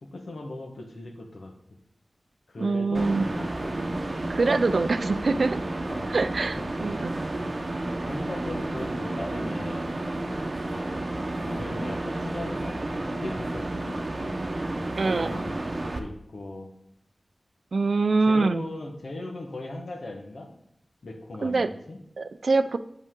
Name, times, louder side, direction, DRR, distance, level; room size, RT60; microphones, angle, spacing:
voice 1, 0.0-1.5 2.5-3.7 5.9-6.1 6.5-6.9 8.0-9.9 10.7-11.0 11.4-14.5 15.0-16.7 18.2-20.5 21.0-22.0, left 2 dB, 80° left, 2 dB, 1.2 m, -39 dB
voice 2, 2.6-3.3 4.3-5.6 6.1-7.3 15.0-15.3 17.7-18.6 21.4-21.7 22.2-22.8, right 3 dB, 75° right, 12 dB, 0.4 m, -24 dB
sound 1, 2.9-16.0, right 2 dB, 45° right, 0.8 m, -31 dB
8.1 x 5.4 x 3.7 m, 0.76 s
wide cardioid pair, 90°, 0 cm